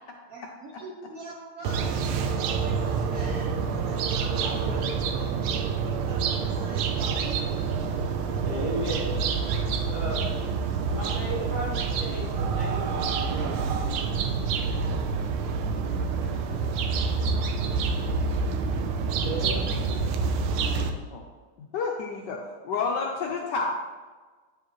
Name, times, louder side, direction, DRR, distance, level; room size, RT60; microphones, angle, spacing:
voice 1, 0.3-5.3 5.5-7.9, right 3 dB, 65° right, -3 dB, 0.8 m, -43 dB
sound 1, 1.6-20.9, right 5 dB, 85° right, 1.5 m, -27 dB
voice 2, 8.4-9.2 9.9-10.3 10.9-13.7 19.2-19.6, right 1 dB, 45° right, -8 dB, 2.9 m, -34 dB
voice 3, 21.6-22.4 22.6-23.8, left 4 dB, 70° left, 0 dB, 1.1 m, -29 dB
9.5 x 4.8 x 3.0 m, 1.4 s
omnidirectional pair, 2.4 m